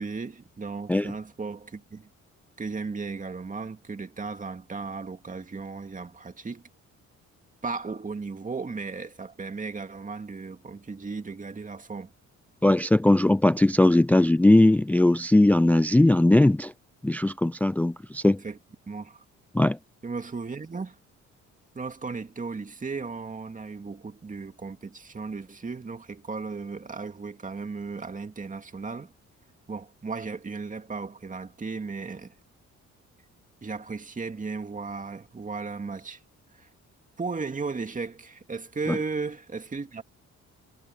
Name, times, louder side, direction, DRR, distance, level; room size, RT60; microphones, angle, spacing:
voice 1, 0.0-2.1 2.6-6.6 7.6-12.1 18.4-18.6 18.9-19.2 20.0-21.0 21.7-29.1 29.7-32.3 33.6-36.2 36.5-36.7 37.2-40.0, right 4 dB, 25° right, 2.3 m, -35 dB
voice 2, 12.6-16.7 17.0-18.4 19.5-19.8, left 1 dB, 5° left, 0.4 m, -19 dB
cardioid pair, 90°, 30 cm